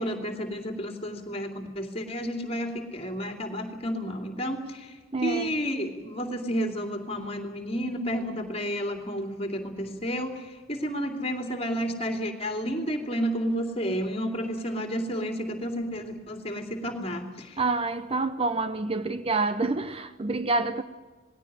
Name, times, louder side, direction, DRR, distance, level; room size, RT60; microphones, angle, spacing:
voice 1, 0.0-17.6, equal, 25° left, 2.8 m, -31 dB
voice 2, 5.1-5.5 17.6-20.8, right 3 dB, 25° right, 0.6 m, -27 dB
20.0 x 16.5 x 9.9 m
head